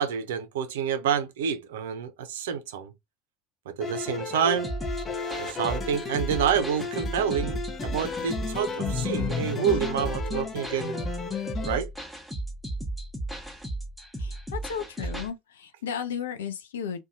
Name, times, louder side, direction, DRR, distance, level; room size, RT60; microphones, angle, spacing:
voice 1, 0.0-2.9 3.7-4.7 5.4-11.0 11.6-11.9, right 7 dB, 75° right, 0.5 m, -28 dB
sound 1, 3.8-11.8, left 5 dB, 35° left, 0.6 m, -33 dB
sound 2, 4.6-15.3, right 1 dB, ahead, 0.9 m, -35 dB
voice 2, 14.2-17.0, left 7 dB, 75° left, 0.4 m, -34 dB
2.6 x 2.2 x 2.5 m
hypercardioid pair, 70°, 0 cm